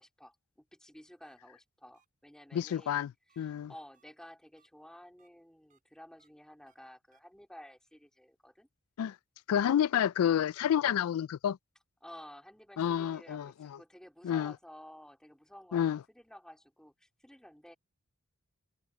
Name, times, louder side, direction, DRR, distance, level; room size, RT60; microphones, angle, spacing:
voice 1, 0.0-3.0 3.3-8.7 12.0-17.8, equal, 5° left, 2.9 m, -53 dB
sound 1, 1.2-1.4 1.9-2.1 2.6-2.7 3.3-3.4 3.9-4.0 4.6-4.7 5.2-5.3 5.7-5.8 6.2-6.3 6.7-6.8 7.1-7.2, right 7 dB, 35° right, 4.0 m, -71 dB
voice 2, 2.5-3.7 9.0-9.1 9.5-11.6 12.8-13.8 14.2-14.5 15.7-16.0, left 9 dB, 80° left, 0.3 m, -29 dB
head